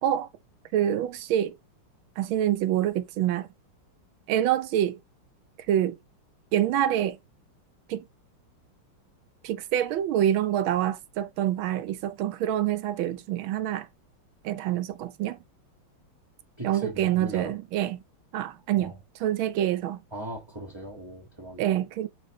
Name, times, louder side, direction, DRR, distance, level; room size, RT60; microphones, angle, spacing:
voice 1, 0.7-1.5 2.2-3.5 4.3-5.0 5.7-6.0 6.5-7.2 7.9-8.0 9.4-13.9 14.4-15.4 16.6-18.0 18.3-18.9 19.2-20.0 21.6-22.1, right 11 dB, 75° right, 1.4 m, -26 dB
voice 2, 16.6-17.6 18.8-19.0 20.1-21.8, right 1 dB, 15° right, 1.3 m, -39 dB
5.6 x 4.4 x 4.2 m
omnidirectional pair, 2.4 m